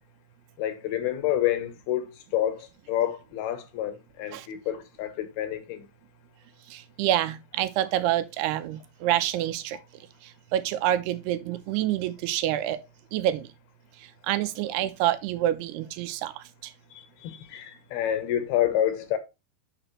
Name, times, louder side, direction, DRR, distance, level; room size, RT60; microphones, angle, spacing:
voice 1, 0.6-5.8 16.9-19.2, left 11 dB, 75° left, 2.8 m, -28 dB
voice 2, 6.7-9.8 10.2-12.8 13.1-13.5 14.0-16.7, right 13 dB, 85° right, 2.6 m, -27 dB
9.0 x 6.0 x 3.1 m
omnidirectional pair, 4.8 m